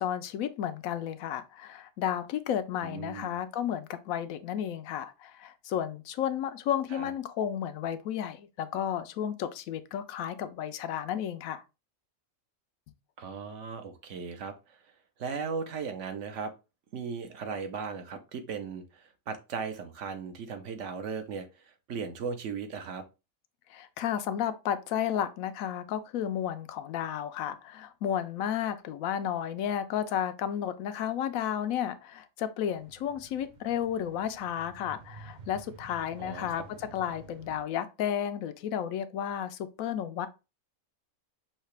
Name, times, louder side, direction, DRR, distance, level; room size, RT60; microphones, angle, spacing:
voice 1, 0.0-11.6 23.7-40.3, left 9 dB, 80° left, 1.0 m, -32 dB
voice 2, 2.8-3.3 6.9-7.1 13.2-14.8 15.2-16.5 16.9-21.5 21.9-23.0 36.2-36.5, right 5 dB, 65° right, 1.1 m, -37 dB
sound 1, 32.7-37.6, right 3 dB, 45° right, 0.6 m, -51 dB
5.6 x 2.8 x 3.2 m
omnidirectional pair, 1.4 m